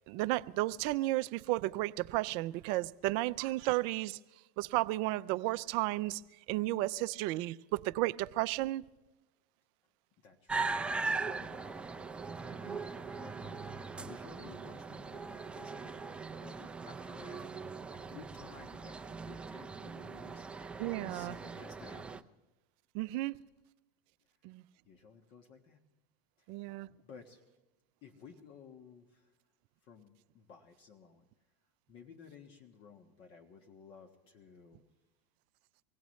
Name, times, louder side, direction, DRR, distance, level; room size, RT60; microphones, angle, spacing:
voice 1, 0.1-4.2 4.6-6.2 6.5-8.9 12.7-12.8 20.8-21.3 22.9-23.4 24.4-24.6 26.5-26.9, right 18 dB, 55° right, 0.5 m, -33 dB
voice 2, 10.2-11.9 12.4-16.0 16.3-20.7 21.1-22.2 24.2-24.4 24.8-25.8 26.4-26.5 27.0-27.4 28.0-29.3 29.8-31.3 31.9-34.8, left 6 dB, 50° left, 1.3 m, -55 dB
sound 1, 10.5-22.2, right 4 dB, 10° right, 0.6 m, -40 dB
25.0 x 17.0 x 3.2 m
hypercardioid pair, 110°, 10 cm